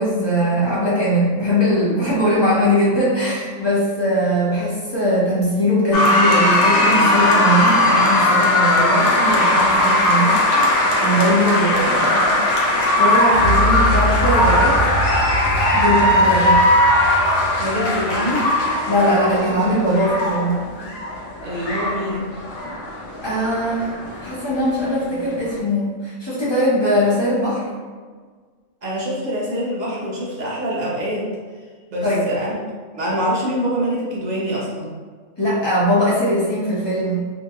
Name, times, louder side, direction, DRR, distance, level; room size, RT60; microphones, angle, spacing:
voice 1, 0.0-10.4 11.0-14.8 15.7-16.6 18.9-20.6 23.2-27.6 32.0-32.2 35.4-37.3, equal, 25° left, -9 dB, 0.9 m, -20 dB
sound 1, 5.9-25.6, left 1 dB, 70° left, 0.8 m, -18 dB
sound 2, 13.3-19.4, right 1 dB, 80° right, 1.0 m, -25 dB
voice 2, 17.6-18.4 21.4-22.3 28.8-31.3 31.9-32.5 32.9-34.9, equal, 45° right, -5 dB, 0.6 m, -25 dB
2.8 x 2.7 x 2.3 m, 1.5 s
omnidirectional pair, 1.4 m